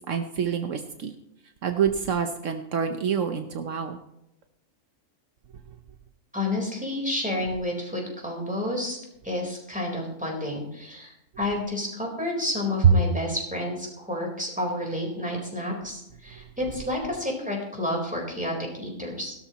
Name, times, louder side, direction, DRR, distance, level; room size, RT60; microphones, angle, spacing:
voice 1, 0.1-1.1 1.6-4.0 12.8-12.9, right 7 dB, 70° right, 7 dB, 1.2 m, -25 dB
voice 2, 6.3-9.0 9.2-19.3, left 1 dB, 5° right, -1 dB, 4.2 m, -30 dB
17.0 x 12.5 x 3.1 m, 0.83 s
omnidirectional pair, 1.3 m